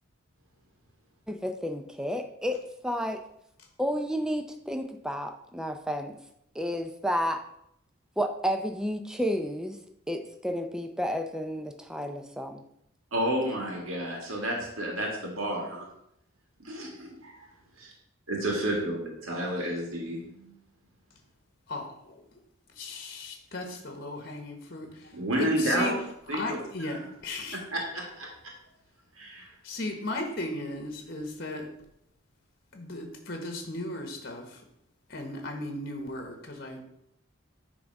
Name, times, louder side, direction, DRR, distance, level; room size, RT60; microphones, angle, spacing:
voice 1, 1.3-3.2 3.8-6.1 6.6-7.4 8.2-9.8 10.1-12.6, equal, 5° right, 6 dB, 0.4 m, -31 dB
voice 2, 13.1-15.9 16.6-17.5 17.8-17.9 18.3-20.5 25.1-25.9 26.3-27.0 27.5-28.3 29.2-29.5, right 1 dB, 90° right, -1 dB, 1.9 m, -31 dB
voice 3, 21.7-22.2 22.8-25.1 25.4-25.9 26.3-27.6 29.6-31.7 32.7-34.6 35.1-36.8, left 2 dB, 50° left, 3 dB, 1.1 m, -36 dB
9.2 x 3.5 x 5.3 m, 0.77 s
head